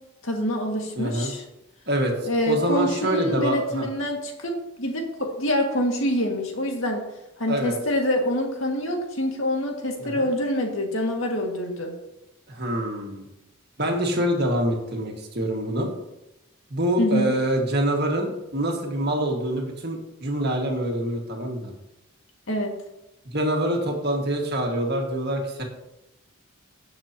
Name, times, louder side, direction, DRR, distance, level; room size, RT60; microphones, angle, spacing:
voice 1, 0.2-1.4 2.3-4.5 4.8-7.0 7.4-11.9 17.0-17.4 22.5-22.7, equal, 65° left, 1 dB, 2.0 m, -26 dB
voice 2, 1.0-1.3 1.9-3.9 7.5-7.7 10.0-10.3 12.5-13.3 13.8-15.9 16.7-21.7 23.3-25.6, right 1 dB, 50° right, 1 dB, 1.9 m, -25 dB
17.0 x 6.8 x 2.9 m, 0.90 s
head